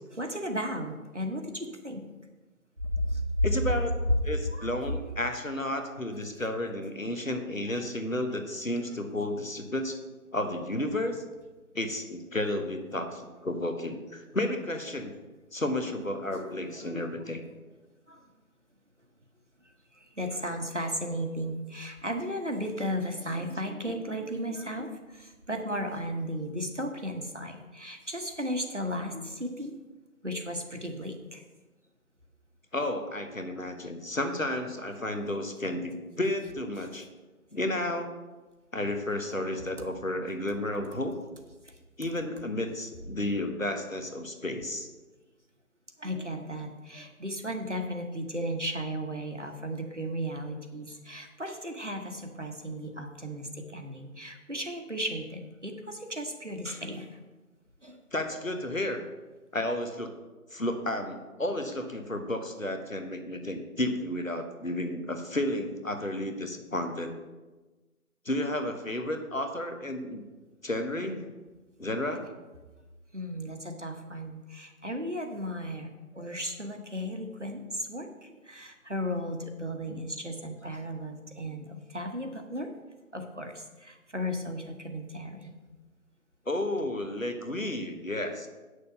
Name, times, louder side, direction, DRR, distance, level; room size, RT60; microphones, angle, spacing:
voice 1, 0.2-2.0 2.9-3.5 4.5-4.7 5.8-6.0 7.7-7.8 16.3-17.0 18.1-18.2 19.9-29.7 30.2-31.4 41.6-41.7 46.0-57.2 57.8-58.0 73.1-75.9 76.1-82.7 83.1-85.5, equal, 50° right, 4 dB, 1.2 m, -35 dB
voice 2, 3.4-10.0 10.3-11.2 11.7-15.1 15.5-17.4 32.7-37.1 37.5-38.1 38.7-41.2 42.0-44.9 58.1-59.0 59.5-60.1 60.5-67.1 68.2-70.2 70.6-71.3 71.8-72.3 79.9-80.0 86.5-88.5, left 1 dB, 60° left, 7 dB, 1.2 m, -32 dB
8.8 x 6.7 x 5.5 m, 1.2 s
figure-of-eight pair, 180°, 44 cm